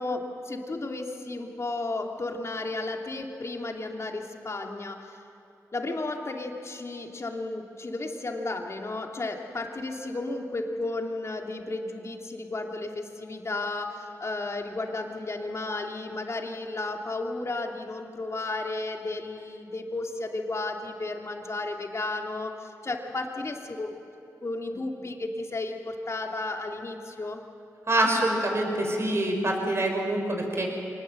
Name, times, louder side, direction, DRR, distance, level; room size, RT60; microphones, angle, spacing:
voice 1, 0.0-5.2 5.7-23.9 24.4-27.4, left 2 dB, 45° left, 2 dB, 2.8 m, -33 dB
voice 2, 27.9-30.7, right 1 dB, 40° right, 1 dB, 5.8 m, -25 dB
24.0 x 20.0 x 7.8 m, 2.8 s
cardioid pair, 45°, 7 cm